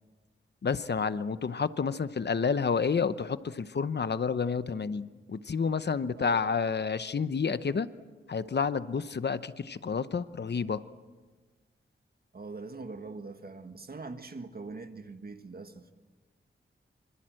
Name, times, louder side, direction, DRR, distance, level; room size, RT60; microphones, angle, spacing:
voice 1, 0.6-7.9 8.3-10.8, left 5 dB, 55° left, 0.8 m, -30 dB
voice 2, 12.3-15.9, right 3 dB, 45° right, 1.7 m, -42 dB
26.5 x 26.0 x 7.7 m
wide cardioid pair, 120°, 21 cm